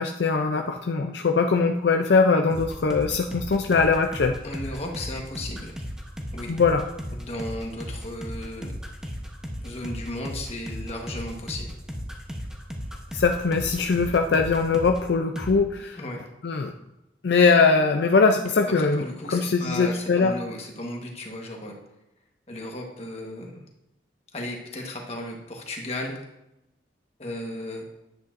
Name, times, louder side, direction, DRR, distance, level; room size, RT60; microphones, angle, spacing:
voice 1, 0.0-4.3 6.5-6.8 13.1-16.0 16.4-16.7 17.2-20.3, left 4 dB, 60° left, 5 dB, 0.4 m, -21 dB
sound 1, 2.5-15.1 15.4-15.6, equal, 5° right, 0.9 m, -35 dB
voice 2, 4.4-5.7 6.3-6.5 7.1-8.7 9.6-11.7 15.9-16.2 18.8-21.7 22.5-23.6 24.3-26.1 27.2-27.8, left 1 dB, 35° left, 1 dB, 1.3 m, -35 dB
10.5 x 8.4 x 2.6 m, 0.91 s
head